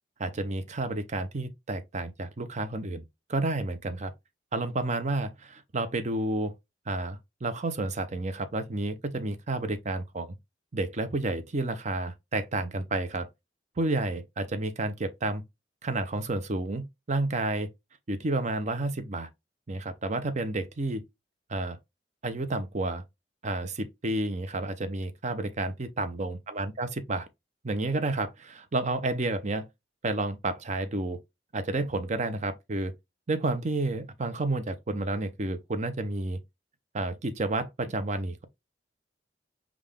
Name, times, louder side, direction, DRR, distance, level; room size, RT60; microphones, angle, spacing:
voice 1, 0.2-3.0 3.3-4.1 4.5-6.5 6.9-10.4 10.7-13.3 13.8-15.4 15.8-17.7 18.1-19.3 19.7-21.0 21.5-21.8 22.2-23.0 23.4-27.3 27.6-29.7 30.0-31.2 31.5-32.9 33.3-36.4 36.9-38.4, right 2 dB, 40° right, 0.6 m, -30 dB
5.5 x 2.4 x 3.5 m
head